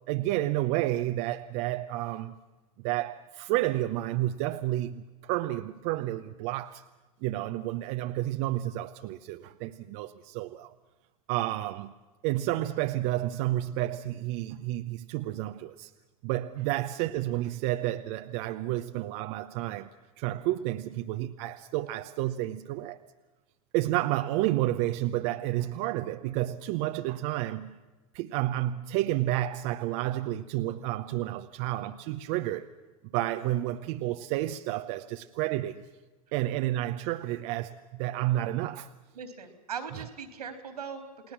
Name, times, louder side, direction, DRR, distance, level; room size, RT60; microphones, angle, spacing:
voice 1, 0.1-2.4 2.8-6.8 7.2-10.7 11.3-11.9 12.2-15.9 16.2-19.9 20.2-23.0 23.7-27.8 28.1-32.7 33.1-35.8 36.3-38.9, right 15 dB, 55° right, 0.9 m, -30 dB
voice 2, 39.1-41.3, right 6 dB, 85° right, 3.6 m, -40 dB
29.5 x 19.0 x 6.0 m
hypercardioid pair, 100°, 19 cm